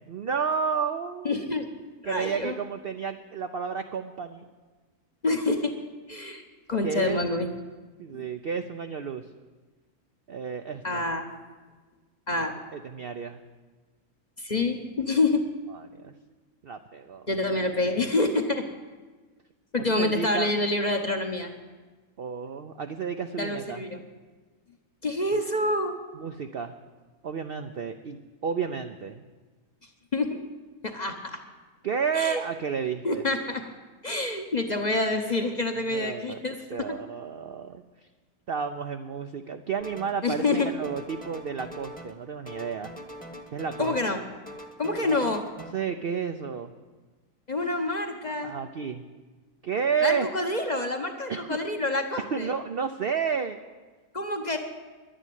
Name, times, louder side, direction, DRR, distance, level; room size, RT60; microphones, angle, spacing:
voice 1, 0.0-1.4 2.1-4.4 6.8-7.2 8.0-9.2 10.3-11.0 12.7-13.4 15.7-16.1 16.6-17.3 20.0-20.5 22.2-23.8 26.1-26.7 27.2-29.2 31.8-33.2 35.9-36.4 36.7-37.8 38.5-42.9 43.5-43.9 45.0-45.2 45.7-46.7 48.4-49.0 49.6-50.3 51.3-51.6 52.2-53.6, right 6 dB, 60° right, 7 dB, 0.6 m, -31 dB
voice 2, 1.2-1.7 2.0-2.6 5.2-5.7 6.1-6.4 6.7-7.5 8.1-8.3 10.8-11.3 12.3-12.5 14.4-15.4 17.3-18.6 19.7-21.5 23.4-24.0 25.0-26.0 30.1-30.4 30.8-31.4 32.1-32.4 33.0-33.6 34.0-36.6 40.2-40.7 43.8-44.2 44.8-45.4 47.5-48.5 50.0-52.5 54.1-54.6, left 2 dB, 35° left, 5 dB, 0.9 m, -27 dB
sound 1, 39.8-40.2 40.5-42.2 42.5-44.2 44.5-45.7, equal, 5° left, 1.0 m, -43 dB
11.0 x 10.5 x 9.3 m, 1.3 s
omnidirectional pair, 1.7 m